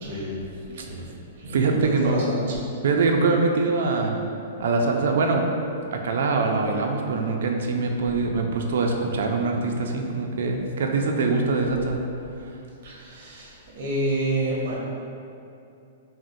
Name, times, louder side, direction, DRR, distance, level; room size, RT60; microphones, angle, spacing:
voice 1, 0.0-1.1 1.4-2.6 12.8-14.8, right 1 dB, 50° right, -4 dB, 0.7 m, -29 dB
voice 2, 1.4-2.3 2.8-4.2 4.6-5.5 5.9-12.0, right 3 dB, 70° right, 2 dB, 0.3 m, -23 dB
3.7 x 2.0 x 2.6 m, 2.6 s
hypercardioid pair, 165°, 0 cm